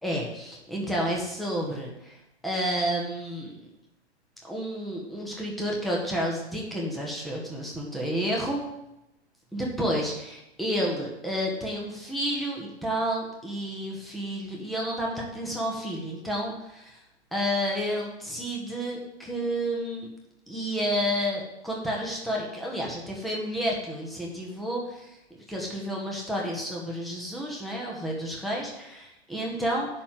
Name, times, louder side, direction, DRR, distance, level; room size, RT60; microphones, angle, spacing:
voice 1, 0.0-2.2 2.4-3.5 4.4-8.6 9.5-17.0 17.3-20.1 20.5-25.2 25.5-29.9, equal, ahead, -3 dB, 1.7 m, -30 dB
11.5 x 4.3 x 7.8 m, 0.88 s
figure-of-eight pair, 115°, 33 cm